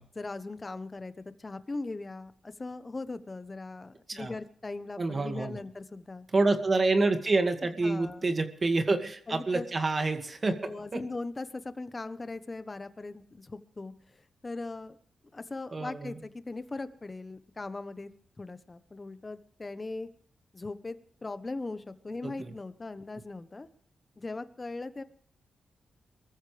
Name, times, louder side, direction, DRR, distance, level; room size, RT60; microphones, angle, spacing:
voice 1, 0.1-6.3 7.8-8.4 9.3-9.7 10.6-13.9 14.4-15.0 15.3-18.1 18.4-20.1 20.5-23.7 24.2-25.0, left 3 dB, 30° left, 12 dB, 1.2 m, -39 dB
voice 2, 5.0-5.6 6.3-11.0 15.7-16.2 22.2-22.5, right 3 dB, 40° right, 6 dB, 2.2 m, -28 dB
23.0 x 14.5 x 3.5 m, 0.62 s
cardioid pair, 85°, 0 cm